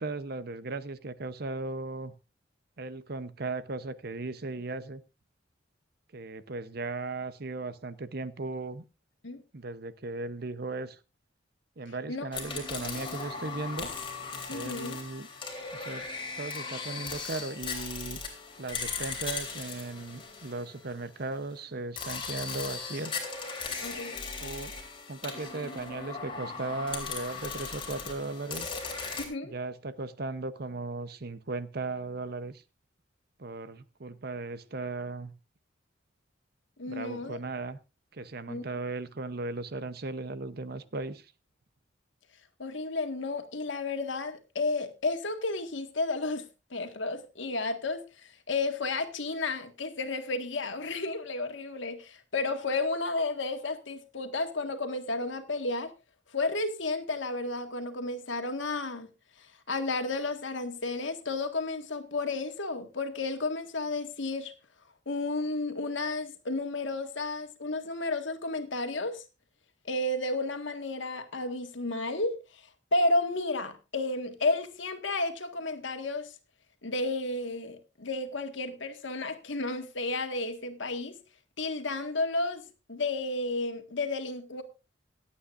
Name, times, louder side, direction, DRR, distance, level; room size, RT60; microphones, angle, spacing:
voice 1, 0.0-2.1 2.8-5.0 6.1-8.8 9.5-11.0 11.8-13.9 14.5-15.3 15.7-16.1 16.4-18.2 18.6-23.2 24.4-24.7 25.1-28.8 29.4-32.6 33.4-35.3 36.8-37.8 38.1-41.3, right 3 dB, 55° right, 0.8 m, -37 dB
sound 1, 12.3-21.2 22.0-29.2, left 5 dB, 25° left, 3.4 m, -38 dB
voice 2, 14.5-15.0 23.8-24.3 29.2-29.5 36.8-37.4 38.5-38.6 42.6-55.9 56.3-59.1 59.4-64.5 65.1-69.2 69.9-72.6 72.9-76.3 76.8-81.2 81.6-84.6, left 2 dB, 80° left, 1.7 m, -32 dB
25.5 x 8.7 x 2.5 m
head